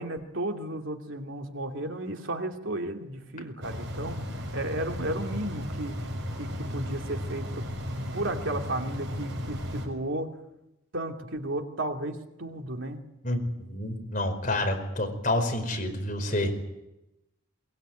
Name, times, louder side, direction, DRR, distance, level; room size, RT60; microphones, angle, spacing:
voice 1, 0.0-4.2 4.5-6.0 6.4-7.7 8.1-10.3 10.9-13.0, right 1 dB, 75° right, 3 dB, 2.7 m, -33 dB
sound 1, 3.6-9.9, equal, 60° right, 6.2 m, -35 dB
voice 2, 13.2-16.5, left 1 dB, 40° left, 5 dB, 4.9 m, -28 dB
22.5 x 21.5 x 9.2 m, 0.91 s
head